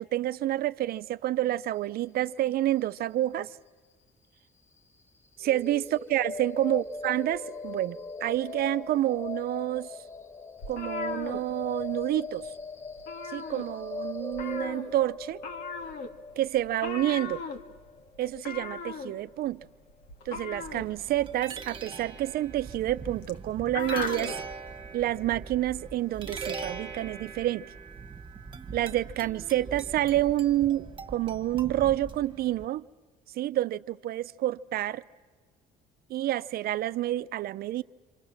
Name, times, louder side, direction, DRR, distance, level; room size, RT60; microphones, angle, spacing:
voice 1, 0.0-3.6 5.4-10.0 10.7-12.5 13.3-15.4 16.4-17.4 18.2-19.7 20.3-24.3 24.9-27.7 28.7-32.9 33.3-35.0 36.1-37.8, right 14 dB, 65° right, 0.7 m, -28 dB
sound 1, 5.4-19.4, left 3 dB, 15° left, 2.1 m, -40 dB
sound 2, 10.6-12.1 12.4-12.6 12.9-14.0 14.3-24.4, left 4 dB, 75° left, 2.0 m, -38 dB
sound 3, 20.5-32.6, right 4 dB, 30° right, 1.7 m, -41 dB
27.5 x 25.5 x 7.3 m
cardioid pair, 110°, 17 cm